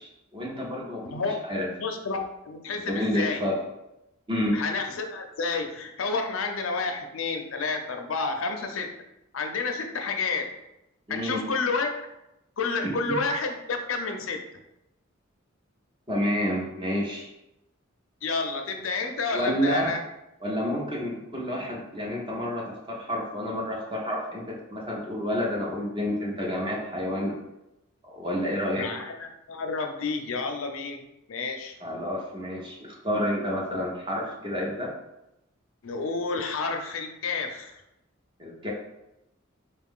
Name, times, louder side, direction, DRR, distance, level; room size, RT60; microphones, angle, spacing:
voice 1, 0.0-1.7 2.8-3.6 4.3-4.6 11.1-11.4 12.8-12.9 16.1-17.3 19.3-19.9 20.4-27.3 28.0-28.9 31.8-34.9 38.4-38.7, equal, 25° right, -2 dB, 0.7 m, -29 dB
voice 2, 1.8-3.4 4.5-8.9 9.3-10.5 11.1-11.9 12.6-14.4 18.2-20.0 28.8-31.0 31.3-31.8 33.7-33.8 35.8-37.8, left 4 dB, 85° left, 4 dB, 0.6 m, -30 dB
4.2 x 2.4 x 3.6 m, 0.89 s
head